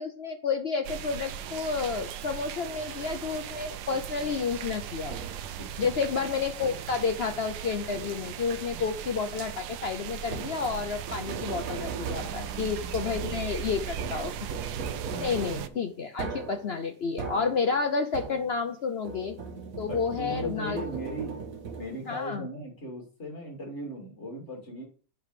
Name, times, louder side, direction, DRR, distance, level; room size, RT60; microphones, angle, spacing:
voice 1, 0.0-5.2 5.8-14.3 15.2-19.4 19.8-20.8 22.1-22.5, left 5 dB, 75° left, 6 dB, 0.5 m, -30 dB
sound 1, 0.8-15.7, right 10 dB, 75° right, 1.1 m, -38 dB
sound 2, 5.1-5.6 6.6-7.1 7.9-8.5 10.2-18.8 19.0-22.2, right 5 dB, 55° right, 1.4 m, -39 dB
voice 2, 5.5-6.0 12.2-13.5 15.1-15.5 19.8-21.4 21.8-24.8, equal, 40° left, 0 dB, 2.8 m, -39 dB
7.5 x 4.0 x 6.6 m, 0.41 s
omnidirectional pair, 1.9 m